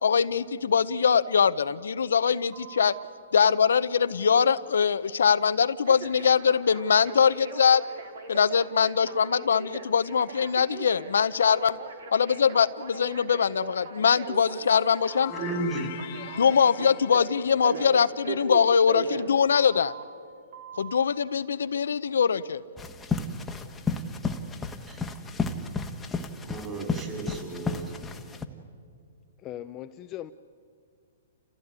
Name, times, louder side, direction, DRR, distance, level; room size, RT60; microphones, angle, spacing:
voice 1, 0.0-2.9 3.3-7.8 8.3-11.8 12.1-15.3 16.4-19.9 20.8-22.6, left 6 dB, 85° left, 13 dB, 0.7 m, -22 dB
Telephone, 2.5-3.1 5.8-20.0 20.5-21.0, right 4 dB, 70° right, 3.2 m, -39 dB
sound 1, 14.3-19.1, left 15 dB, 45° left, 1.2 m, -44 dB
voice 2, 15.3-15.9 24.9-25.0 26.4-28.0, right 2 dB, 25° right, 3 dB, 5.0 m, -34 dB
sound 2, 22.8-28.4, left 4 dB, 10° left, 1.3 m, -32 dB
voice 3, 29.4-30.3, left 13 dB, 30° left, 9 dB, 0.6 m, -39 dB
29.5 x 15.0 x 9.6 m, 2.2 s
hypercardioid pair, 140°, 0 cm